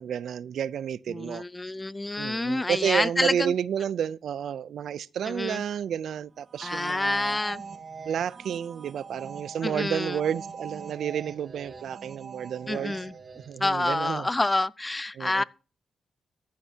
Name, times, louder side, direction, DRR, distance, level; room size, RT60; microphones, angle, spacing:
voice 1, 0.0-1.4 2.2-7.4 8.1-12.9 13.5-14.3 15.2-15.4, right 9 dB, 85° right, 0.4 m, -31 dB
voice 2, 1.1-3.5 5.2-5.6 6.6-7.6 9.6-10.2 12.7-13.1 13.6-15.4, left 2 dB, 20° left, 0.5 m, -28 dB
sound 1, 6.4-13.8, right 5 dB, 50° right, 1.7 m, -43 dB
14.5 x 11.5 x 2.8 m
cardioid pair, 80°, 0 cm